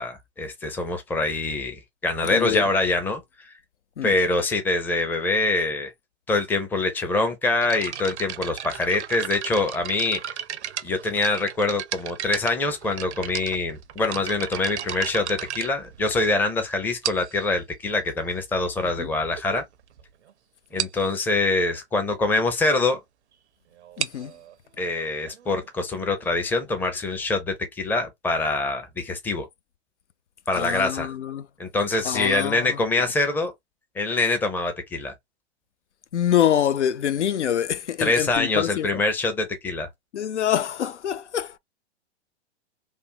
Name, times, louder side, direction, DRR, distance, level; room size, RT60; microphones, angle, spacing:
voice 1, 0.0-3.5 4.0-5.9 6.3-10.2 10.8-19.6 20.7-23.0 24.8-29.5 30.5-31.1 31.6-33.5 34.0-35.1 38.0-39.9, left 3 dB, 5° left, 0.5 m, -24 dB
voice 2, 2.2-2.6 4.0-4.1 19.0-19.1 24.0-24.3 30.5-31.5 32.0-32.8 36.1-39.0 40.1-41.6, left 10 dB, 85° left, 0.6 m, -25 dB
sound 1, 7.6-16.4 17.0-17.5 18.3-18.4 19.0-19.1 19.4-19.6 19.9-20.0 20.3-20.4 20.8-21.1 23.8-27.2, right 10 dB, 75° right, 0.6 m, -35 dB
3.4 x 2.2 x 2.7 m
hypercardioid pair, 120°, 34 cm